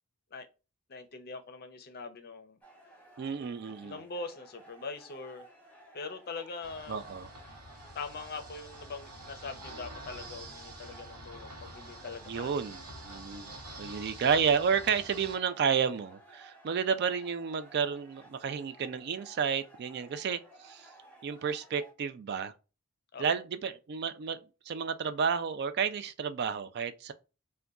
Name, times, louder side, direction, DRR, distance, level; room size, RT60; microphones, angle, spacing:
voice 1, 0.9-2.6 3.8-5.4 5.9-7.0 7.9-12.6 23.1-23.3, left 4 dB, 45° left, 0.5 m, -42 dB
sound 1, 2.6-21.9, right 1 dB, 5° left, 0.8 m, -56 dB
voice 2, 3.2-4.0 6.9-7.3 12.3-20.9 21.2-22.5 23.2-27.1, right 6 dB, 45° right, 0.3 m, -31 dB
sound 2, 6.6-15.4, right 1 dB, 80° right, 0.9 m, -47 dB
3.8 x 2.2 x 2.3 m
head